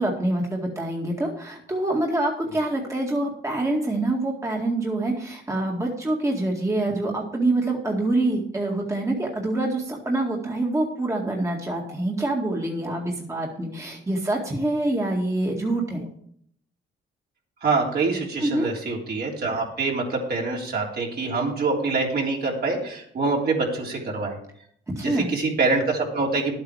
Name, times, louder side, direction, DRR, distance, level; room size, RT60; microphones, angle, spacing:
voice 1, 0.0-16.0 18.4-18.7 25.0-25.3, right 2 dB, 15° right, -1 dB, 2.0 m, -26 dB
voice 2, 17.6-24.4 24.9-26.5, right 3 dB, 55° right, -2 dB, 3.4 m, -25 dB
11.0 x 8.6 x 4.8 m, 0.65 s
cardioid pair, 90°, 20 cm